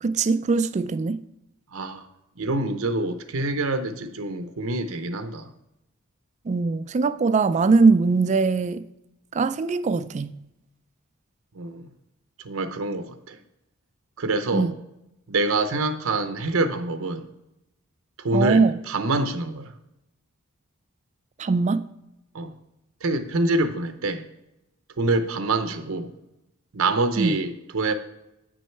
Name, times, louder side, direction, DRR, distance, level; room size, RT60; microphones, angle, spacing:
voice 1, 0.0-1.2 6.5-8.9 9.3-10.4 14.5-14.7 18.3-18.7 21.4-21.8 27.2-27.3, right 4 dB, 35° right, 0.3 m, -21 dB
voice 2, 1.7-2.1 2.4-5.5 11.6-11.9 12.4-13.4 14.2-14.7 15.3-17.3 18.2-19.7 22.3-22.5 23.0-24.3 25.0-26.1 26.7-27.9, right 2 dB, 70° right, 0.7 m, -26 dB
8.6 x 6.3 x 4.4 m
head